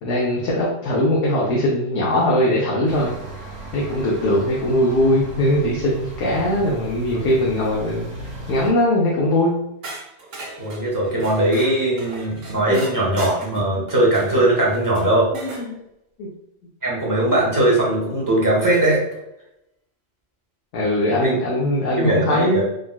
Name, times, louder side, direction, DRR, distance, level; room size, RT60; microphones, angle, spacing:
voice 1, 0.0-3.1 3.7-9.6 12.7-12.8 15.3-15.8 16.2-16.3 20.7-22.6, left 1 dB, 80° left, -4 dB, 1.0 m, -20 dB
sound 1, 2.9-8.7, equal, 55° right, 1.2 m, -36 dB
sound 2, 9.8-15.7 17.7-17.8 18.7-19.2, right 2 dB, 85° right, 1.1 m, -38 dB
voice 2, 10.6-15.3 16.8-19.0 21.2-21.3 22.0-22.7, right 1 dB, 20° right, -5 dB, 0.7 m, -19 dB
3.6 x 2.2 x 2.2 m, 0.83 s
omnidirectional pair, 1.2 m